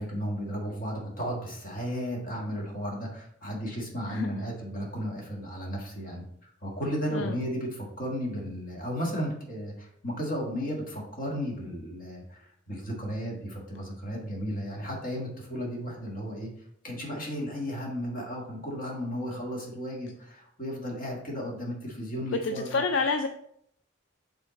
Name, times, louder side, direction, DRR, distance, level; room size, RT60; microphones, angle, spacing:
voice 1, 0.0-6.2 6.6-16.5 16.8-22.8, equal, 45° left, -2 dB, 1.7 m, -34 dB
voice 2, 4.1-4.4 7.1-7.3 22.4-23.3, left 4 dB, 65° left, 6 dB, 0.4 m, -28 dB
6.4 x 3.6 x 4.0 m, 0.70 s
head